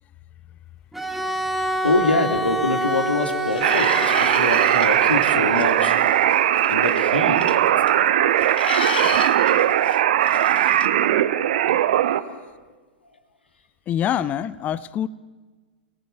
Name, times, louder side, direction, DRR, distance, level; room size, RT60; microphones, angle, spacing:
Bowed string instrument, 0.9-5.9, equal, ahead, 1.7 m, -28 dB
voice 1, 1.8-6.0 6.7-7.6 8.0-8.3 12.2-12.6, left 2 dB, 80° left, 3.5 m, -25 dB
sound 1, 3.5-8.0 8.3-10.9, left 7 dB, 65° left, 1.7 m, -34 dB
sound 2, 3.6-12.2, right 11 dB, 55° right, 1.2 m, -19 dB
voice 2, 13.9-15.1, left 10 dB, 25° left, 0.7 m, -25 dB
29.0 x 19.0 x 7.2 m
figure-of-eight pair, 100°, 6 cm